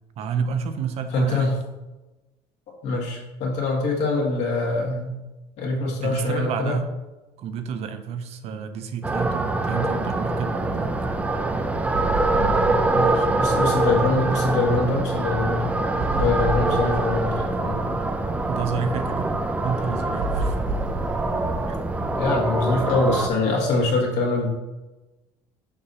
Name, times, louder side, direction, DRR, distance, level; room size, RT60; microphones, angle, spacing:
voice 1, 0.2-1.5 6.0-6.9 7.4-10.9 12.3-13.4 18.5-20.6 21.7-21.8, right 6 dB, 55° right, 9 dB, 0.6 m, -30 dB
voice 2, 1.1-1.5 2.8-5.1 5.6-6.8 13.4-15.7 16.1-17.8 22.2-24.5, left 3 dB, 65° left, -2 dB, 1.8 m, -24 dB
sound 1, 9.0-23.3, right 2 dB, 10° right, 0.4 m, -24 dB
sound 2, 10.7-22.6, right 2 dB, 40° right, 1.0 m, -33 dB
6.7 x 2.6 x 5.5 m, 1.1 s
cardioid pair, 130°, 13 cm